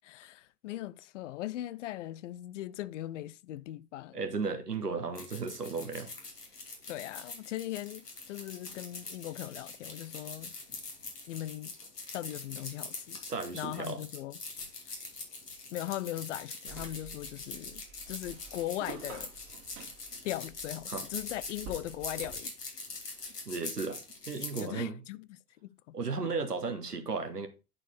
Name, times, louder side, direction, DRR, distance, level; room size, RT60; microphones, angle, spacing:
voice 1, 0.0-4.2 6.9-10.6 11.3-11.8 12.1-13.2 13.5-14.4 15.7-19.3 20.2-22.5 24.6-25.3 25.6-26.0 26.2-26.3, left 14 dB, 55° left, 0.5 m, -39 dB
voice 2, 4.1-6.1 13.3-14.0 20.9-21.0 23.5-25.0 25.9-27.5, right 4 dB, 85° right, 1.3 m, -35 dB
sound 1, 5.1-24.7, left 3 dB, 80° left, 2.3 m, -43 dB
sound 2, 16.7-22.4, right 6 dB, 55° right, 2.4 m, -49 dB
9.6 x 4.6 x 4.0 m
figure-of-eight pair, 85°, 46 cm